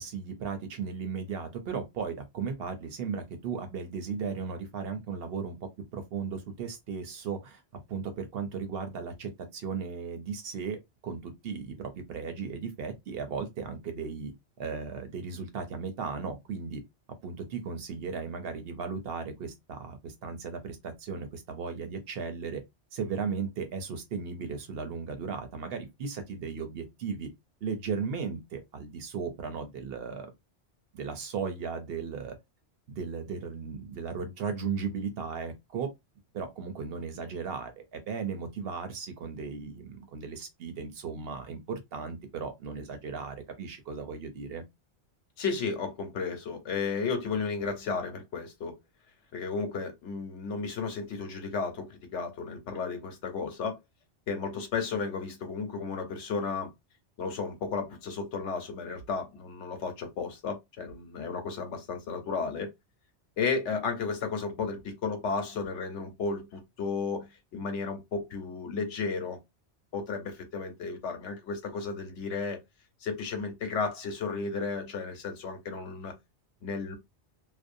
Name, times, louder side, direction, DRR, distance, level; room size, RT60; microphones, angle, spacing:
voice 1, 0.0-5.6 5.9-7.6 7.9-14.3 14.6-16.8 17.2-22.6 22.9-27.3 27.6-30.3 30.9-32.4 32.9-35.9 36.3-44.6, right 5 dB, 65° right, 0.8 m, -36 dB
voice 2, 45.4-48.8 49.3-53.8 54.3-56.7 57.2-62.7 63.4-69.4 69.9-72.6 73.0-76.1 76.6-77.0, left 5 dB, 90° left, 1.1 m, -33 dB
2.5 x 2.0 x 2.5 m
omnidirectional pair, 1.2 m